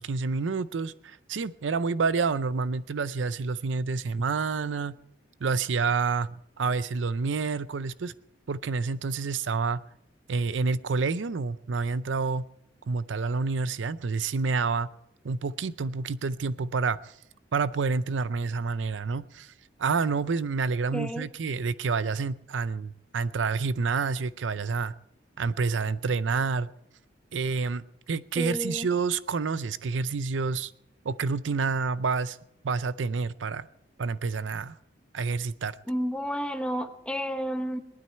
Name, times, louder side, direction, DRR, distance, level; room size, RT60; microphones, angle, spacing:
voice 1, 0.0-4.9 5.4-8.1 8.5-9.8 10.3-12.5 12.9-14.9 15.2-17.1 17.5-19.5 19.8-24.9 25.4-26.7 27.3-30.7 31.0-32.4 32.6-33.7 34.0-34.7 35.1-35.8, right 4 dB, 90° right, 0.5 m, -28 dB
voice 2, 20.9-21.3 28.4-28.9 35.9-37.8, equal, 5° left, 1.0 m, -31 dB
19.0 x 12.5 x 4.5 m
head